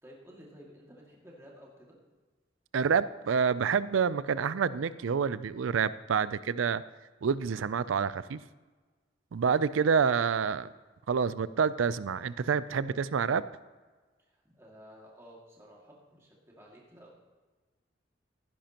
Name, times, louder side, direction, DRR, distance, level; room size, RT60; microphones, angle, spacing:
voice 1, 0.0-2.0 9.8-10.0 14.3-17.1, equal, 15° right, -3 dB, 2.1 m, -53 dB
voice 2, 2.7-6.8 7.2-8.4 9.3-10.7 11.1-13.4, right 6 dB, 90° right, 16 dB, 0.4 m, -28 dB
16.5 x 10.0 x 2.9 m, 1.3 s
head